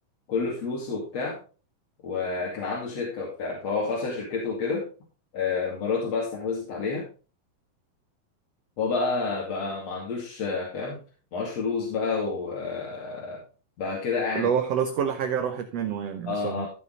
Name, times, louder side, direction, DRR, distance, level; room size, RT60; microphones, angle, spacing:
voice 1, 0.3-1.4 2.0-4.9 5.3-7.1 8.8-11.0 11.3-13.4 13.8-14.5 16.3-16.7, left 4 dB, 50° left, -4 dB, 3.4 m, -29 dB
voice 2, 14.3-16.7, right 8 dB, 70° right, 6 dB, 1.5 m, -27 dB
15.5 x 5.6 x 3.8 m, 0.35 s
omnidirectional pair, 4.1 m